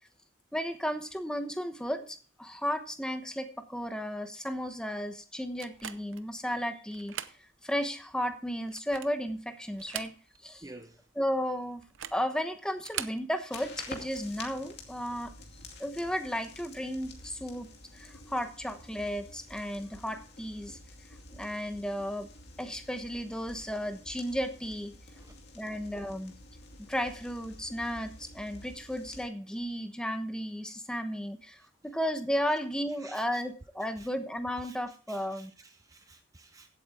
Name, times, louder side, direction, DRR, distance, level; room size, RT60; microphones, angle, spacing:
voice 1, 0.5-7.3 7.6-10.1 10.4-10.7 11.2-11.8 12.1-15.3 15.8-20.8 21.3-22.3 22.6-24.9 25.5-26.3 26.8-35.5, equal, 5° left, 1.0 m, -34 dB
sound 1, 5.6-6.3 6.9-7.4 7.8-7.9 8.6-9.3 9.7-10.5 10.8-10.9 11.8-12.3 12.8-13.2, right 11 dB, 80° right, 0.7 m, -40 dB
voice 2, 10.6-11.1 25.1-25.4 31.6-31.7 33.0-33.4 34.0-34.1 34.6-36.8, right 2 dB, 15° right, 0.5 m, -52 dB
sound 2, 13.5-29.3, left 2 dB, 55° left, 2.4 m, -49 dB
16.0 x 8.4 x 3.6 m
head